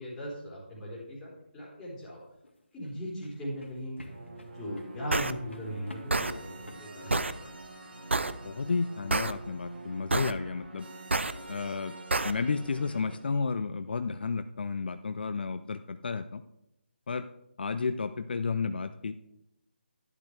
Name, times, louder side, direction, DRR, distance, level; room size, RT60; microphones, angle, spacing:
voice 1, 0.0-2.2 2.7-4.0 4.5-7.1, equal, 10° left, -8 dB, 4.1 m, -38 dB
sound 1, 2.3-8.0, left 2 dB, 85° left, 2.1 m, -51 dB
sound 2, 4.1-13.2, right 2 dB, 65° right, 2.2 m, -46 dB
sound 3, 5.1-5.3 6.1-6.3 7.1-7.3 8.1-8.3 9.1-9.3 10.1-10.3 11.1-11.3 12.1-12.3, right 3 dB, 80° right, 0.7 m, -27 dB
voice 2, 8.4-10.9 11.5-11.9 12.2-16.4 17.1-17.3 17.6-19.1, left 4 dB, 55° left, 10 dB, 0.5 m, -32 dB
12.0 x 10.5 x 3.3 m, 0.85 s
figure-of-eight pair, 155°, 6 cm